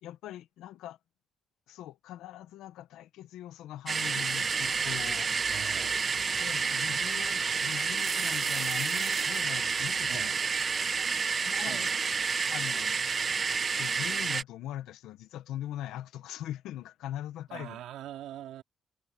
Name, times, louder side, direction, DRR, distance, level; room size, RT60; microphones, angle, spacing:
voice 1, 0.0-1.0 1.7-5.6 6.4-10.3 11.4-11.9 12.5-12.9 13.8-17.8, left 12 dB, 90° left, 1.3 m, -41 dB
sound 1, 3.9-14.4, right 5 dB, 40° right, 1.2 m, -29 dB
voice 2, 5.5-6.0 10.1-10.3 11.6-11.9 17.5-18.6, right 12 dB, 85° right, 3.5 m, -42 dB
cardioid pair, 90°, 0 cm